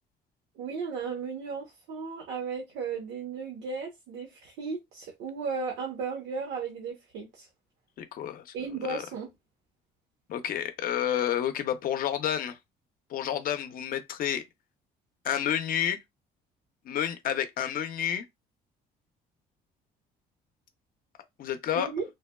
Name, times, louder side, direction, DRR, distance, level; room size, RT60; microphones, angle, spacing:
voice 1, 0.6-7.5 8.5-9.3 21.7-22.0, right 5 dB, 90° right, 0.9 m, -35 dB
voice 2, 8.0-8.5 8.9-9.0 10.3-12.6 13.1-14.4 15.2-16.0 16.8-18.2 21.4-21.9, left 10 dB, 55° left, 0.6 m, -30 dB
3.3 x 2.2 x 2.2 m
cardioid pair, 110°, 17 cm